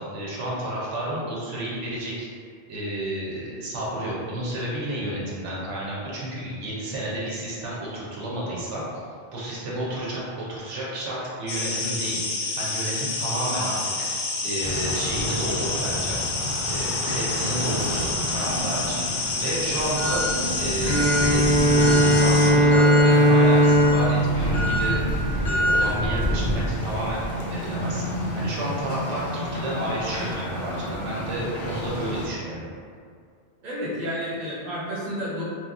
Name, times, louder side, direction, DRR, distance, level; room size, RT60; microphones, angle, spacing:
voice 1, 0.0-2.3 2.7-9.0 9.3-14.1 14.4-16.2 16.7-20.2 20.6-25.0 25.4-28.0 28.3-32.7, right 1 dB, 85° right, -6 dB, 1.0 m, -31 dB
sound 1, 11.5-22.5, left 3 dB, 85° left, 0.9 m, -28 dB
sound 2, 14.6-32.3, equal, 60° left, 0.5 m, -29 dB
Bowed string instrument, 20.8-25.5, equal, 10° right, 0.8 m, -19 dB
voice 2, 33.6-35.4, equal, 45° right, -8 dB, 0.8 m, -30 dB
2.9 x 2.3 x 2.4 m, 2.2 s
omnidirectional pair, 1.2 m